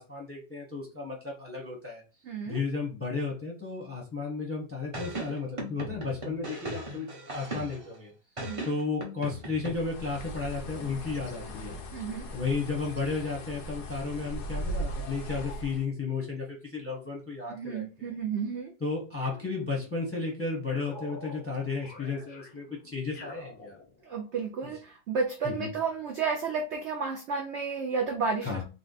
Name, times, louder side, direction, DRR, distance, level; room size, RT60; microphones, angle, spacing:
voice 1, 0.0-2.0 2.4-8.1 8.6-11.8 12.3-18.1 18.8-23.8 25.4-25.7 28.4-28.6, left 4 dB, 10° left, -2 dB, 0.7 m, -33 dB
voice 2, 2.2-2.6 8.4-8.7 11.9-12.2 17.5-18.7 24.0-28.6, right 5 dB, 70° right, 2 dB, 0.6 m, -32 dB
sound 1, 4.9-7.9 8.4-9.7, right 1 dB, 30° right, 0.6 m, -38 dB
Bird, 9.6-15.9, right 1 dB, 85° left, 1.2 m, -38 dB
sound 2, 19.2-20.2 20.7-24.3, left 3 dB, 50° left, 0.7 m, -48 dB
3.4 x 2.1 x 3.9 m, 0.33 s
omnidirectional pair, 1.7 m